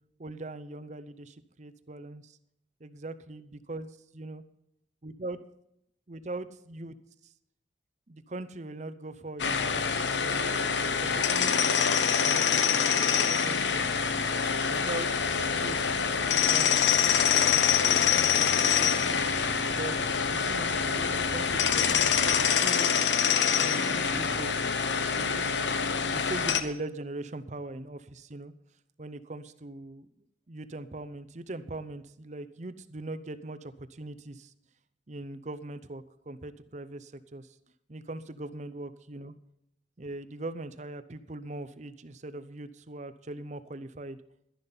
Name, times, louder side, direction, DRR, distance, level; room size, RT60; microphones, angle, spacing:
voice 1, 0.2-2.4 2.8-4.4 5.0-5.4 6.1-7.0 8.1-10.4 11.0-13.9 14.7-15.8 16.2-19.2 19.7-23.0 23.6-24.7 24.9-28.5 29.0-30.1 30.5-34.5 35.1-37.5 37.9-39.3 40.0-44.2, right 2 dB, 40° right, 11 dB, 0.7 m, -41 dB
sound 1, 9.4-26.6, left 6 dB, 80° left, 1.0 m, -25 dB
sound 2, 15.2-22.6, left 1 dB, 50° left, 1.0 m, -46 dB
12.0 x 11.0 x 5.5 m, 0.75 s
head